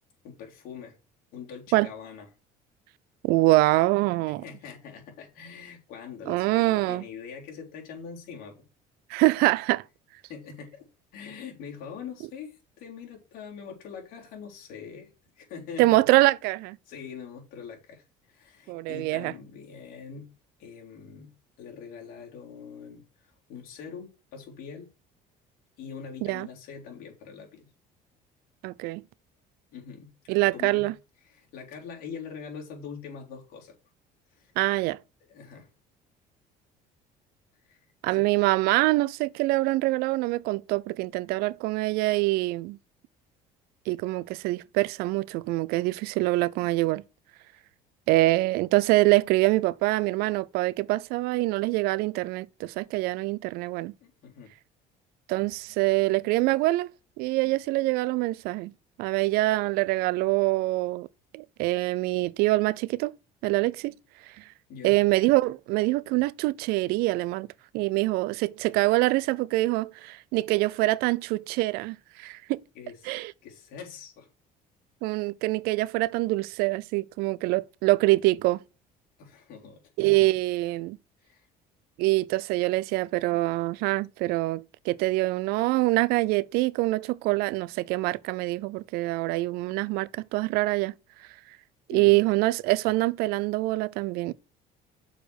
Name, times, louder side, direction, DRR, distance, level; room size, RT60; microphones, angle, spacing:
voice 1, 0.2-1.0 1.3-2.3 4.4-8.6 10.3-10.9 11.1-15.1 15.4-16.2 16.9-20.3 20.6-21.3 21.6-24.9 25.8-27.7 29.7-30.1 30.4-30.9 31.3-33.7 34.3-34.5 35.3-35.7 37.7-37.8 38.1-38.3 54.0-54.5 64.7-65.0 72.8-73.0 73.4-74.3 79.2-79.8 81.2-81.5 91.9-92.2, left 6 dB, 70° left, 3.6 m, -43 dB
voice 2, 3.2-4.4 6.3-7.0 9.1-9.8 15.8-16.8 18.7-19.3 26.2-26.5 28.6-29.0 30.3-30.9 34.6-35.0 38.0-42.8 43.9-47.0 48.1-53.9 55.3-56.9 57.2-58.7 59.0-61.1 61.3-63.1 63.4-63.9 64.4-64.5 64.8-67.5 67.7-72.6 73.1-73.3 75.0-78.6 80.0-81.0 82.0-90.9 91.9-94.3, right 20 dB, 80° right, 0.5 m, -25 dB
6.6 x 5.0 x 6.3 m
cardioid pair, 130°, 16 cm